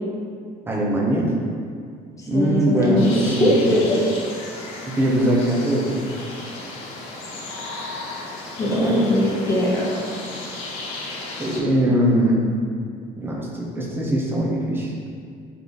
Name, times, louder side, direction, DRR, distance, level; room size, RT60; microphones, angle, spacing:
voice 1, 0.7-1.3 2.3-3.6 4.8-6.0 8.6-9.0 11.4-12.4 13.2-14.9, right 1 dB, 15° right, -4 dB, 0.8 m, -21 dB
voice 2, 2.3-4.1 8.6-10.0, left 1 dB, 20° left, -5 dB, 1.1 m, -20 dB
sound 1, 3.0-11.6, left 2 dB, 80° left, 0.9 m, -35 dB
3.8 x 3.2 x 3.8 m, 2.2 s
cardioid pair, 115°, 17 cm